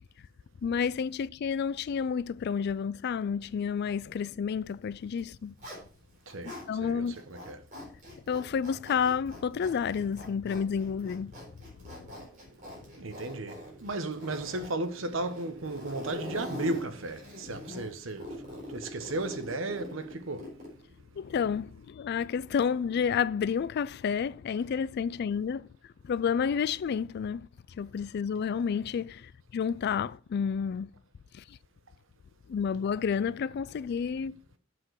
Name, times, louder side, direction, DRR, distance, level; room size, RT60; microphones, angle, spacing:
voice 1, 0.6-5.5 6.7-7.2 8.3-11.3 11.8-12.1 21.2-25.7 26.0-30.9 31.3-31.6 32.5-34.4, left 6 dB, 55° left, 0.3 m, -30 dB
Zipper (clothing), 5.1-6.7 7.1-20.8, left 1 dB, 40° right, 3.9 m, -44 dB
voice 2, 6.3-7.6 12.1-12.2 12.8-20.5, right 2 dB, 75° right, 1.0 m, -35 dB
7.6 x 6.0 x 4.7 m
head